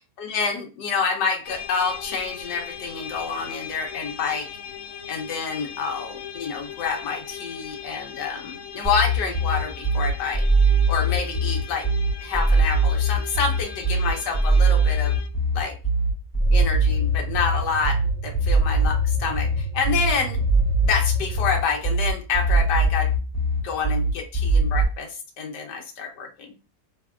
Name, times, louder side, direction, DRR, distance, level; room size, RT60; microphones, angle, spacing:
voice 1, 0.2-4.5 5.1-10.4 10.9-11.9 12.2-15.1 15.5-15.7 16.5-20.4 20.9-23.1 23.6-26.5, left 5 dB, 80° left, 1 dB, 1.5 m, -28 dB
sound 1, 1.4-15.3, left 7 dB, 65° left, 0.8 m, -39 dB
sound 2, 8.8-24.8, right 1 dB, 20° left, 2.3 m, -21 dB
sound 3, 16.4-21.5, right 7 dB, 80° right, 1.2 m, -34 dB
3.5 x 3.4 x 2.4 m, 0.31 s
omnidirectional pair, 1.8 m